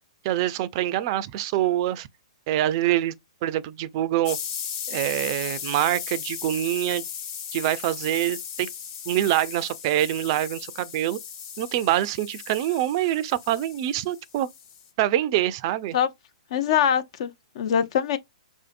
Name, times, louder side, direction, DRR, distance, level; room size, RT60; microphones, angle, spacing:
voice 1, 0.2-2.1 2.5-3.1 3.4-4.4 4.9-7.1 7.5-8.7 9.1-11.2 11.6-14.5 15.0-16.0, right 13 dB, 45° right, 0.4 m, -25 dB
sound 1, 4.2-14.9, left 8 dB, 30° left, 0.8 m, -37 dB
voice 2, 16.5-18.2, left 9 dB, 55° left, 0.5 m, -23 dB
4.9 x 2.7 x 2.4 m
hypercardioid pair, 125°, 4 cm